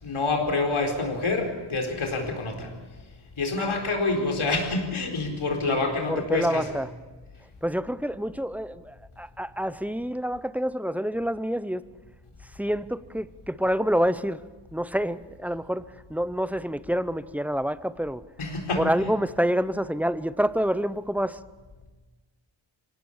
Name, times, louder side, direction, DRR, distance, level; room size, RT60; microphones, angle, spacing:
voice 1, 0.0-2.7 3.4-6.6 18.4-18.9, left 3 dB, 80° left, 2 dB, 4.4 m, -27 dB
voice 2, 6.1-6.9 7.6-11.8 12.4-14.4 14.7-18.2 18.8-21.4, equal, 5° right, 15 dB, 0.7 m, -27 dB
24.0 x 17.5 x 7.3 m, 1.3 s
wide cardioid pair, 75°, 49 cm